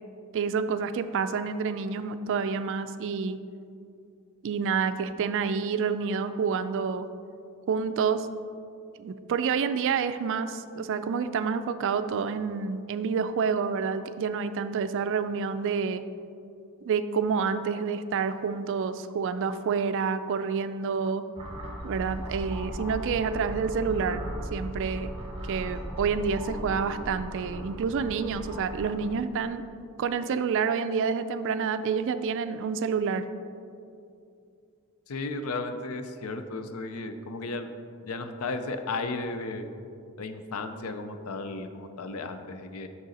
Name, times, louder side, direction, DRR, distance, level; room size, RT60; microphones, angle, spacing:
voice 1, 0.3-3.4 4.4-7.1 7.7-8.3 9.0-16.0 16.9-21.2 21.8-24.2 24.5-25.1 25.4-29.6 30.0-33.3, right 6 dB, 60° right, 11 dB, 0.3 m, -28 dB
sound 1, 21.3-29.1, equal, 25° right, 1.2 m, -37 dB
voice 2, 35.1-37.7 38.0-39.7 40.2-42.9, left 3 dB, 70° left, 8 dB, 0.5 m, -34 dB
6.4 x 6.1 x 4.1 m, 2.5 s
head